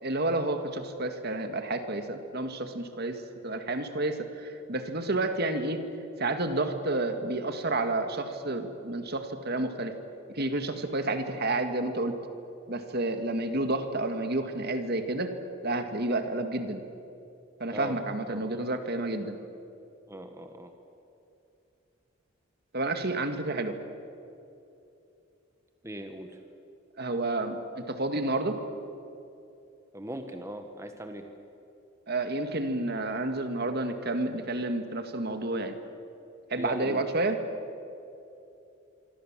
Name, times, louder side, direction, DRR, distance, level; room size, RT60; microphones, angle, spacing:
voice 1, 0.0-5.8 6.2-10.0 10.3-12.2 12.7-15.3 15.6-16.8 17.6-19.4 22.7-23.8 27.0-28.6 32.1-35.8 36.5-37.4, right 2 dB, 50° right, 7 dB, 2.0 m, -30 dB
voice 2, 18.3-18.6 20.1-20.7 25.8-26.4 29.9-31.3 36.6-37.0, right 1 dB, 15° right, 6 dB, 1.4 m, -39 dB
26.0 x 25.0 x 7.5 m, 2.8 s
head